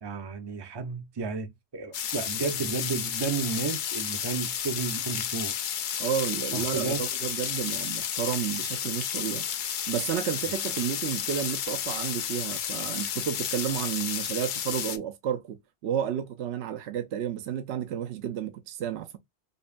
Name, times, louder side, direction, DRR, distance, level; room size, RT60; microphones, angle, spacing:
voice 1, 0.0-5.5 6.5-7.0, right 5 dB, 30° right, 0.5 m, -32 dB
sound 1, 1.9-15.0, left 9 dB, 60° left, 0.5 m, -32 dB
voice 2, 6.0-9.5 9.9-15.6 15.8-19.2, right 9 dB, 75° right, 0.9 m, -31 dB
5.3 x 2.2 x 2.5 m
omnidirectional pair, 1.2 m